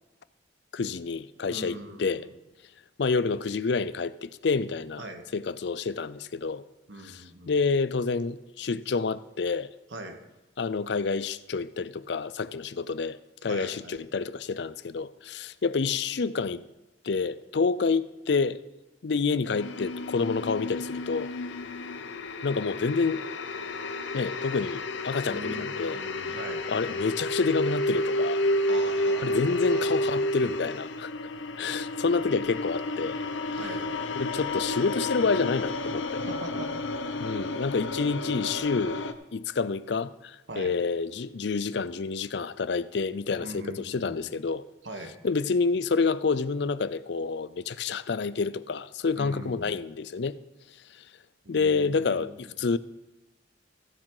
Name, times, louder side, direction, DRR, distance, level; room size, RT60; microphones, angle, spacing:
voice 1, 0.7-2.2 3.0-5.0 5.3-6.6 7.0-9.7 10.6-16.6 17.0-18.6 19.0-21.3 22.4-23.3 24.1-26.0 26.3-26.4 26.7-28.4 29.2-31.1 31.6-33.2 34.1-36.2 37.2-39.0 39.3-44.6 45.2-50.4 51.5-52.8, left 4 dB, 65° left, 0.5 m, -28 dB
voice 2, 1.5-2.3 5.0-5.2 6.9-7.5 9.9-10.2 13.5-14.0 25.3-26.6 28.7-29.9 33.6-33.8 36.3-36.8 40.5-40.7 43.4-44.2 44.8-45.1 49.1-49.8 51.4-52.5, right 1 dB, 80° right, 1.7 m, -41 dB
sound 1, 19.5-39.1, left 1 dB, 80° left, 0.8 m, -31 dB
15.0 x 7.3 x 4.9 m
head